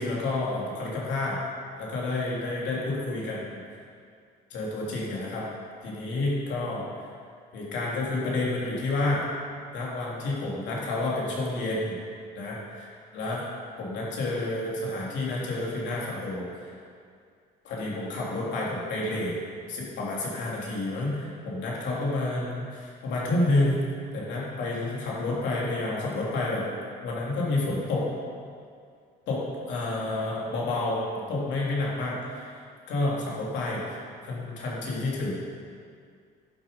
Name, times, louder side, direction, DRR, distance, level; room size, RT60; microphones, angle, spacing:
voice 1, 0.0-1.4 1.8-3.6 4.5-5.5 5.8-6.9 7.5-9.2 9.7-12.0 12.3-13.4 13.8-16.7 17.6-19.3 19.7-23.8 24.1-26.7 27.0-28.1 29.3-32.5 32.9-34.0 34.2-35.4, left 2 dB, 75° left, -5 dB, 3.2 m, -29 dB
11.5 x 7.6 x 5.4 m, 2.2 s
cardioid pair, 140°, 19 cm